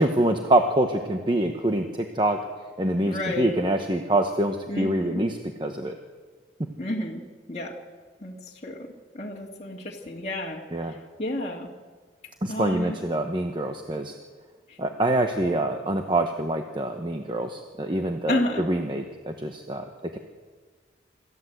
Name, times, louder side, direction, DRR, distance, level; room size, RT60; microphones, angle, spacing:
voice 1, 0.0-2.4 2.8-5.9 10.7-11.0 12.4-14.1 14.8-19.9 20.1-20.2, right 1 dB, 25° right, 5 dB, 1.1 m, -25 dB
voice 2, 3.1-3.5 4.7-5.2 6.8-7.8 8.2-11.7 12.5-13.0 14.7-14.8 18.3-18.7, left 1 dB, 35° left, -2 dB, 2.0 m, -31 dB
27.0 x 14.0 x 8.0 m, 1.5 s
head